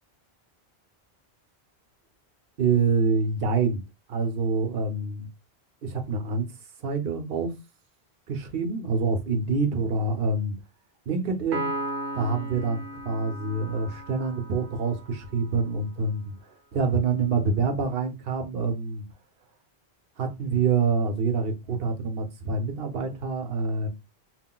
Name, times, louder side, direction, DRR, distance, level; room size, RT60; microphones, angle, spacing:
voice 1, 2.6-3.8 4.1-5.3 5.8-6.5 6.8-7.5 8.3-10.6 11.1-11.7 12.1-16.3 16.7-19.0 20.2-23.9, right 4 dB, 60° right, 1.0 m, -26 dB
Piano, 11.5-15.1, right 1 dB, 80° right, 1.0 m, -35 dB
5.5 x 2.6 x 2.3 m
omnidirectional pair, 1.1 m